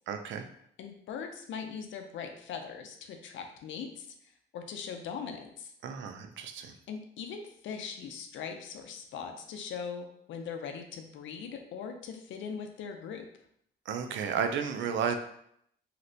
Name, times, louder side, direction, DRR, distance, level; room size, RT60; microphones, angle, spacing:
voice 1, 0.1-0.4 5.8-6.7 13.9-15.2, right 7 dB, 70° right, 7 dB, 0.5 m, -32 dB
voice 2, 0.8-4.1 4.5-5.7 6.9-13.3, left 6 dB, 75° left, 5 dB, 0.5 m, -40 dB
3.0 x 2.9 x 2.7 m, 0.70 s
cardioid pair, 90°, 20 cm